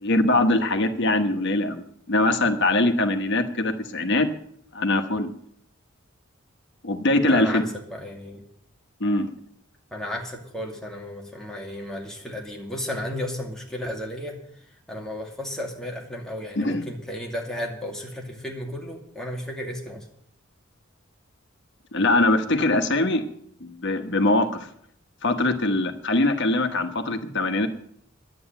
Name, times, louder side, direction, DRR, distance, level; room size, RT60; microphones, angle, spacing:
voice 1, 0.0-4.3 4.7-5.3 6.8-7.6 9.0-9.3 16.6-16.8 21.9-23.2 23.6-24.7 25.2-27.7, left 2 dB, 60° left, 7 dB, 1.3 m, -22 dB
voice 2, 7.2-7.7 7.9-8.4 9.9-14.4 14.9-20.0, left 1 dB, 5° left, -1 dB, 2.5 m, -33 dB
11.0 x 8.7 x 9.0 m, 0.69 s
head